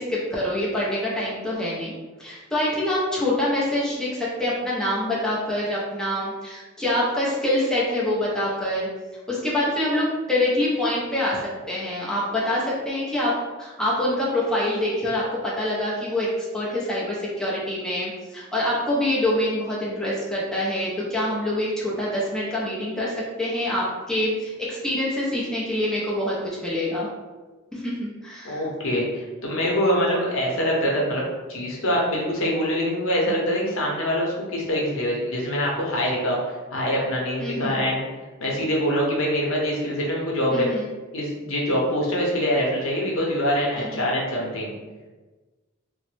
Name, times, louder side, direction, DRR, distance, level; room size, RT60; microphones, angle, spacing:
voice 1, 0.0-1.9 2.2-8.9 9.3-27.1 27.7-28.7 37.4-37.8 40.5-40.9 43.8-44.0, left 1 dB, 5° left, -7 dB, 0.5 m, -25 dB
voice 2, 28.4-31.2 31.5-38.0 38.4-40.7 41.1-44.7, equal, 80° left, -3 dB, 0.7 m, -24 dB
2.9 x 2.0 x 3.1 m, 1.3 s
head